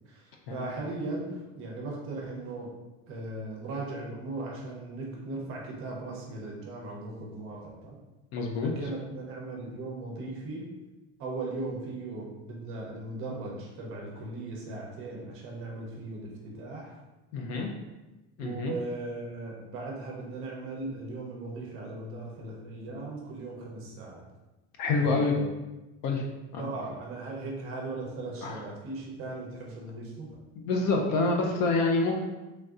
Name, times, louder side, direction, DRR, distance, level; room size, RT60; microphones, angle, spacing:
voice 1, 0.1-2.7 3.1-8.0 8.8-10.7 11.2-16.9 18.4-24.2 24.9-25.5 26.6-30.3, right 2 dB, 40° right, -2 dB, 0.6 m, -38 dB
voice 2, 8.3-8.7 17.3-17.7 18.4-18.7 24.8-25.3 26.0-26.2 26.5-26.6 28.4-28.6 30.6-32.2, left 3 dB, 50° left, 1 dB, 0.4 m, -27 dB
3.2 x 2.6 x 2.3 m, 1.1 s
cardioid pair, 155°, 36 cm